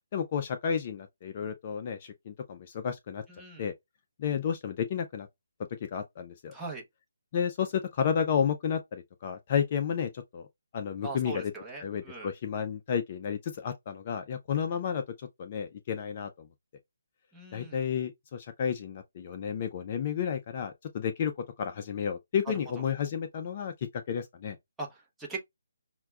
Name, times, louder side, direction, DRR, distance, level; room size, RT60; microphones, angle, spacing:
voice 1, 0.1-3.2 3.6-3.7 4.2-5.3 5.8-6.5 7.3-10.5 10.7-11.5 11.8-16.5 17.5-21.3 21.6-24.6, left 7 dB, 35° left, 0.4 m, -32 dB
voice 2, 3.3-3.7 6.5-6.8 11.0-12.3 17.3-17.8 24.8-25.5, right 3 dB, 5° right, 0.7 m, -40 dB
5.6 x 2.1 x 2.3 m
hypercardioid pair, 165°, 0 cm